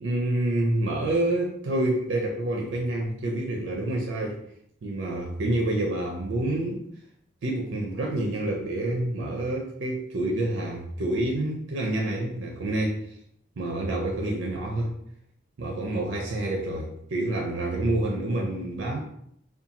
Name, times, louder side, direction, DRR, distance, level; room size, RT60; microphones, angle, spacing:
voice 1, 0.0-4.4 4.8-6.8 7.4-13.0 13.6-14.9 15.6-19.0, right 1 dB, 80° right, -1 dB, 0.4 m, -28 dB
2.5 x 2.2 x 2.8 m, 0.70 s
head